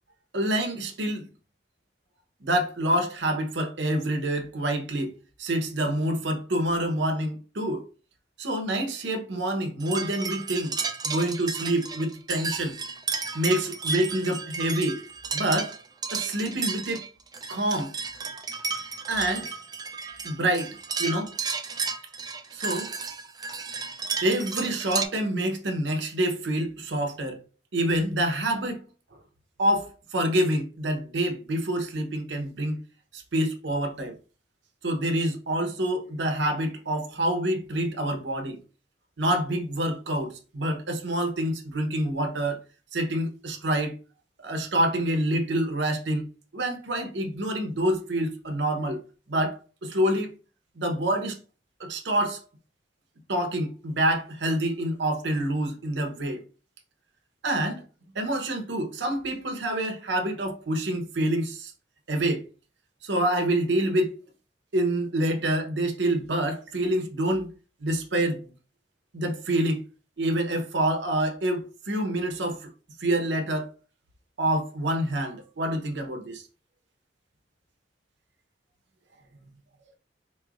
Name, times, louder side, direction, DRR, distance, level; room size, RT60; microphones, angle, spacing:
voice 1, 0.3-1.3 2.4-7.9 8.4-10.7 11.0-12.7 13.3-15.0 15.3-15.7 16.1-17.0 17.5-17.9 19.1-19.5 20.2-21.3 22.5-22.9 24.2-27.4 27.7-28.8 29.6-32.8 33.1-34.2 34.8-38.6 39.2-42.6 42.9-44.0 44.4-46.2 46.5-50.3 50.8-51.4 51.8-52.4 53.3-56.4 57.4-57.8 58.1-61.7 62.1-62.5 63.0-64.2 64.7-67.5 67.8-68.5 69.1-69.8 70.2-72.7 73.0-73.7 74.4-76.4, right 1 dB, 75° right, 0.8 m, -27 dB
sound 1, 9.8-25.1, right 5 dB, 20° right, 0.4 m, -33 dB
4.3 x 3.0 x 2.4 m
head